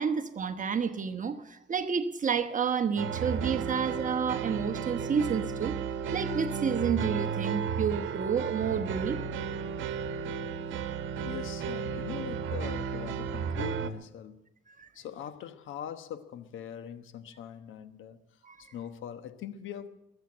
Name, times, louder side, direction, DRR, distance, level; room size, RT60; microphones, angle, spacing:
voice 1, 0.0-5.7 6.1-9.2 14.8-14.9 18.4-18.7, right 6 dB, 40° right, 1.1 m, -30 dB
sound 1, 3.0-13.9, right 6 dB, 75° right, 1.2 m, -33 dB
voice 2, 11.2-14.4 14.9-18.2 18.6-19.9, left 9 dB, 80° left, 1.2 m, -41 dB
21.5 x 8.1 x 7.8 m
cardioid pair, 90°, 20 cm